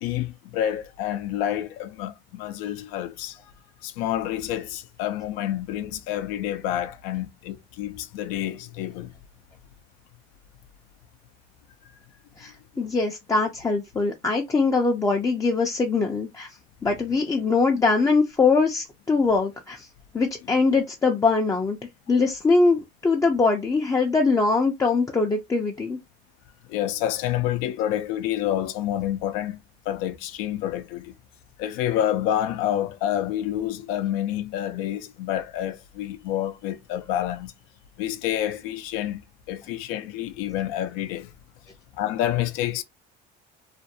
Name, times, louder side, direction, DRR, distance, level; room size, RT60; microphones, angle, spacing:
voice 1, 0.0-3.4 3.8-9.1 26.7-29.6 29.9-31.1 31.6-37.5 38.0-39.2 39.5-41.3 42.0-42.8, left 12 dB, 80° left, 0.5 m, -28 dB
voice 2, 12.4-16.5 16.8-19.9 20.1-21.8 22.1-26.0, left 4 dB, 15° left, 0.4 m, -22 dB
2.5 x 2.1 x 2.7 m
cardioid pair, 115°, 21 cm